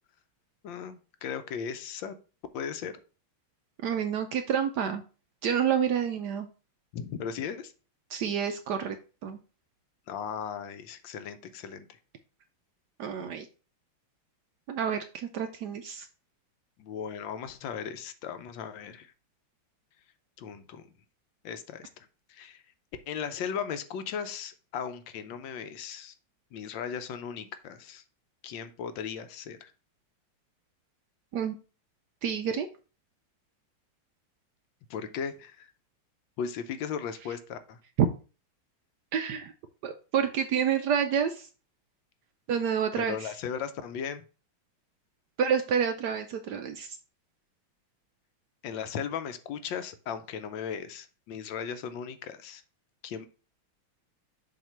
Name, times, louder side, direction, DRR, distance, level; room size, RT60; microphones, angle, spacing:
voice 1, 0.6-2.2 2.5-3.0 6.9-7.7 10.1-12.0 16.8-19.1 20.4-20.9 21.4-22.6 23.1-26.1 26.5-28.0 28.4-29.7 34.9-35.7 36.4-37.8 43.0-44.2 48.6-52.6 53.0-53.3, left 7 dB, 70° left, 10 dB, 1.3 m, -37 dB
voice 2, 3.8-5.0 5.4-6.5 8.1-9.0 9.2-9.4 13.0-13.5 14.7-16.1 31.3-31.6 32.2-32.7 38.0-38.1 39.1-39.5 39.8-41.5 42.5-43.3 45.4-47.0, right 8 dB, 75° right, 7 dB, 0.9 m, -28 dB
7.2 x 2.9 x 5.6 m, 0.35 s
omnidirectional pair, 2.3 m